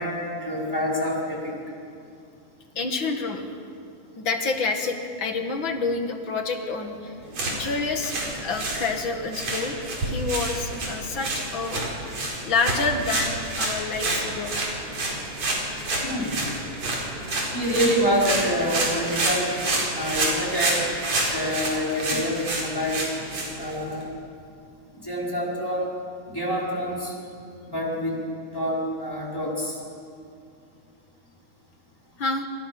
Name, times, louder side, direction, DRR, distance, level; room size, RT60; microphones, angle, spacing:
voice 1, 0.0-1.5 16.0-16.4 17.5-19.5 20.0-20.8 21.3-23.1 23.6-24.1 25.0-25.9 26.3-27.1 27.7-28.2 28.5-29.8, equal, 5° left, -4 dB, 4.6 m, -26 dB
voice 2, 2.8-3.5 4.2-7.1 7.5-9.8 10.0-11.8 12.5-14.5 32.2-32.5, left 4 dB, 45° left, 5 dB, 2.2 m, -28 dB
sound 1, 7.2-24.0, right 2 dB, 60° right, 5.7 m, -29 dB
27.5 x 26.5 x 6.1 m, 2.5 s
omnidirectional pair, 3.6 m